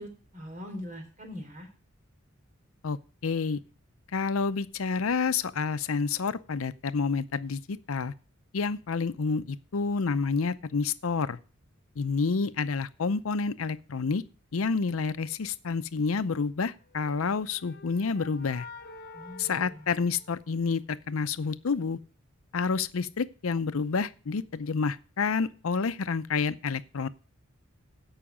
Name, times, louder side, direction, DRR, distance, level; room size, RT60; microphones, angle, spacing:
voice 1, 0.0-1.7 19.1-19.9, left 1 dB, 40° right, 3.7 m, -42 dB
voice 2, 2.8-3.6 4.1-8.1 8.5-11.4 12.0-14.2 14.5-18.7 19.4-22.0 22.5-27.1, left 5 dB, 85° left, 0.6 m, -29 dB
sound 1, 16.9-20.8, left 3 dB, 50° left, 0.9 m, -48 dB
16.0 x 5.7 x 5.0 m
head